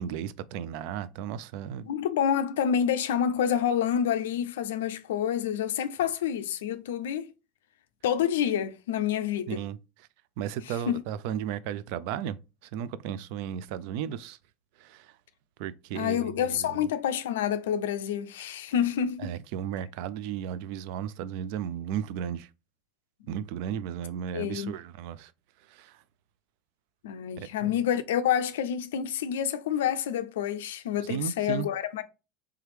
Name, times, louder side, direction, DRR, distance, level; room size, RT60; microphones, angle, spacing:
voice 1, 0.0-1.9 9.5-9.8 10.4-12.4 12.6-14.4 14.8-15.1 15.6-16.8 19.2-22.5 23.3-25.3 25.7-26.0 27.4-27.7 31.1-31.7, right 9 dB, 65° right, 0.3 m, -34 dB
voice 2, 1.9-7.3 8.0-9.6 10.7-11.0 15.9-19.4 24.3-24.7 27.0-32.0, left 9 dB, 80° left, 0.4 m, -28 dB
3.4 x 3.1 x 3.2 m
hypercardioid pair, 90°, 0 cm